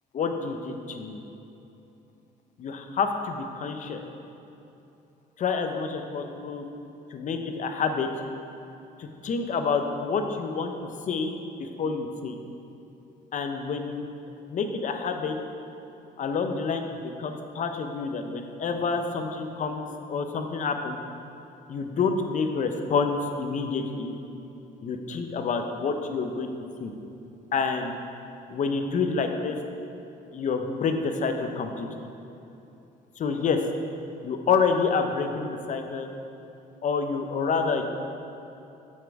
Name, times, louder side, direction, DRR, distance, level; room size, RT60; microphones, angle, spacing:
voice 1, 0.1-1.2 2.6-4.0 5.4-6.7 7.1-8.1 9.0-10.7 11.1-11.3 11.6-12.4 13.3-14.0 14.5-15.4 16.2-19.8 20.1-21.0 21.7-24.1 24.8-26.5 26.8-26.9 27.5-27.9 28.5-29.6 30.3-31.9 33.2-33.6 34.2-36.1 36.8-37.8, left 5 dB, 45° left, 5 dB, 0.8 m, -28 dB
8.0 x 7.5 x 4.8 m, 2.9 s
cardioid pair, 110°, 17 cm